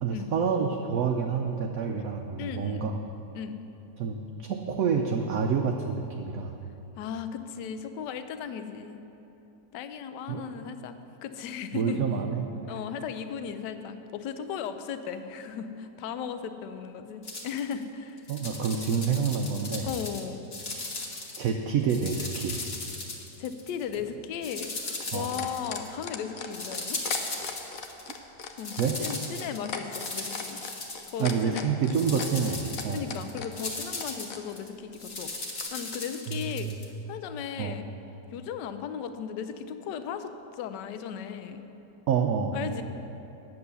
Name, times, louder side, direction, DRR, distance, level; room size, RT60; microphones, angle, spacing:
voice 1, 0.0-3.0 4.0-6.5 10.3-10.5 11.7-12.5 18.3-19.9 21.4-22.5 25.1-25.3 28.8-29.0 31.2-33.1 36.3-36.8 37.6-37.8 42.1-42.7, right 6 dB, 65° right, 3 dB, 0.9 m, -28 dB
voice 2, 2.4-2.9 3.3-3.6 7.0-9.0 9.7-11.0 11.2-12.0 12.7-18.2 19.8-20.4 23.4-27.0 28.6-30.6 31.1-31.7 32.9-35.3 35.7-36.7 37.1-37.9 38.3-41.6 42.5-42.8, left 7 dB, 75° left, 9 dB, 1.2 m, -36 dB
sound 1, 17.2-17.7 18.2-20.2 20.5-21.5 21.8-24.0 24.4-26.0 26.5-28.1 28.4-31.5 31.8-36.9, left 2 dB, 35° left, 1.3 m, -37 dB
sound 2, 23.9-34.4 35.6-35.7, left 6 dB, 60° left, 1.0 m, -38 dB
9.6 x 7.8 x 6.8 m, 3.0 s
omnidirectional pair, 2.0 m